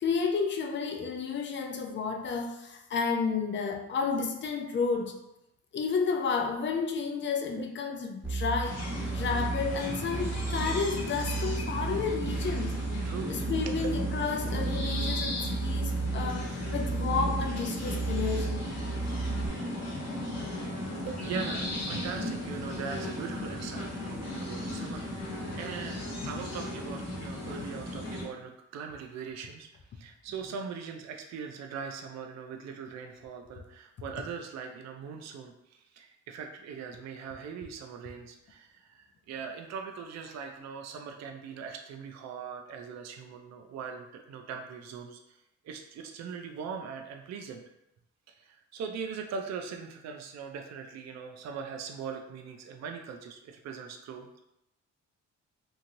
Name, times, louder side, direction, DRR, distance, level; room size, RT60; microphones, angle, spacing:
voice 1, 0.0-5.1 5.7-8.9 9.1-12.8 13.3-18.6, left 5 dB, 40° left, 4 dB, 0.5 m, -31 dB
sound 1, 8.2-19.5, right 3 dB, 5° right, 1.1 m, -33 dB
sound 2, 8.6-28.2, left 1 dB, 60° left, 1.0 m, -36 dB
voice 2, 13.0-13.4 13.7-13.8 21.0-29.7 29.9-47.6 48.3-54.3, right 6 dB, 60° right, 3 dB, 0.5 m, -41 dB
3.0 x 2.6 x 2.6 m, 0.87 s
cardioid pair, 90°, 30 cm